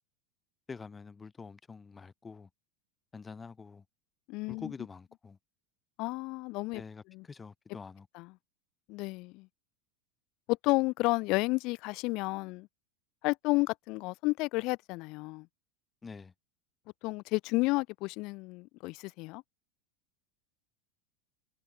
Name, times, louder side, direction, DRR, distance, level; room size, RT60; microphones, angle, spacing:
voice 1, 0.7-2.5 3.1-3.8 4.5-5.4 6.7-8.1 16.0-16.3, left 5 dB, 15° left, 5.6 m, -46 dB
voice 2, 4.3-4.7 6.0-6.8 7.1-7.2 8.1-8.3 8.9-9.5 10.5-12.7 13.2-15.5 17.0-19.4, left 24 dB, 50° left, 0.4 m, -31 dB
supercardioid pair, 145°, 0 cm